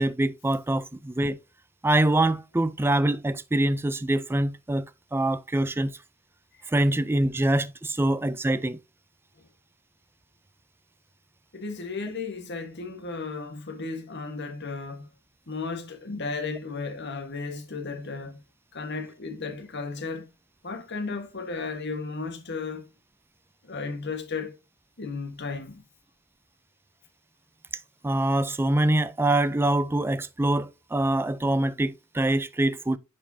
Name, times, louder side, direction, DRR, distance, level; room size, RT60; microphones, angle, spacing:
voice 1, 0.0-1.4 1.8-6.0 6.7-8.8 28.0-33.0, right 1 dB, 10° right, 0.3 m, -24 dB
voice 2, 11.5-15.1 15.5-18.4 18.7-20.3 20.6-22.9 23.6-24.6 25.0-25.8, left 4 dB, 55° left, 1.4 m, -34 dB
10.0 x 4.8 x 2.7 m
head